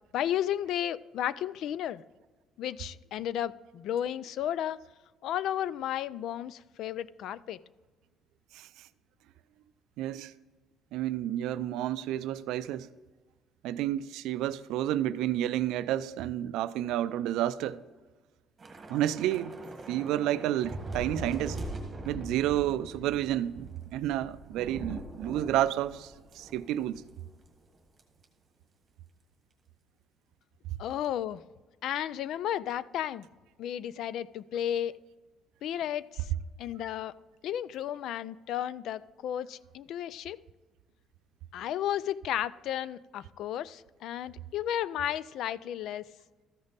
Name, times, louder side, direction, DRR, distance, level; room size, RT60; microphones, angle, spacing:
voice 1, 0.1-2.0 2.6-4.8 5.2-7.6 30.8-31.4 31.8-33.3 33.6-35.0 35.6-36.3 36.6-37.1 37.4-40.4 41.5-46.1, left 11 dB, 60° left, 0.3 m, -33 dB
voice 2, 10.0-10.3 10.9-12.9 13.6-17.8 18.9-19.5 19.9-21.6 22.0-27.0, right 12 dB, 80° right, 0.4 m, -30 dB
Thunder / Rain, 18.6-27.2 27.4-27.6 28.0-28.2, right 2 dB, 20° right, 1.6 m, -42 dB
13.5 x 5.2 x 4.0 m
cardioid pair, 160°, 0 cm